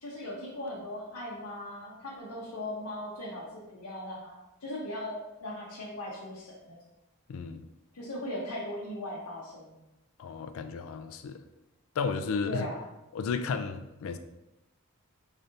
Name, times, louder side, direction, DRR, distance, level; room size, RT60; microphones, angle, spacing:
voice 1, 0.0-6.8 7.9-9.8 12.4-12.8, left 1 dB, 80° left, -5 dB, 0.8 m, -39 dB
voice 2, 7.3-7.6 10.2-11.4 12.0-12.7 13.1-14.2, left 5 dB, 65° left, 9 dB, 0.3 m, -33 dB
3.8 x 3.3 x 2.7 m, 0.94 s
head